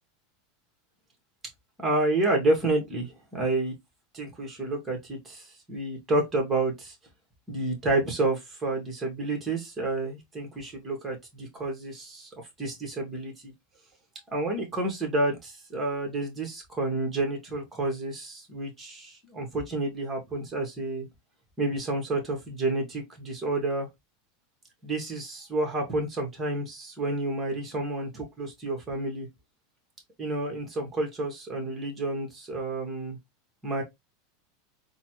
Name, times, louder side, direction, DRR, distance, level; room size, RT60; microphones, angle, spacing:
voice 1, 1.8-3.7 4.1-6.9 7.5-12.3 12.6-13.5 14.3-21.1 21.6-23.9 24.8-29.3 30.2-33.2 33.6-33.8, right 2 dB, 15° right, 1.8 m, -29 dB
3.8 x 2.4 x 3.0 m
supercardioid pair, 125°, 0 cm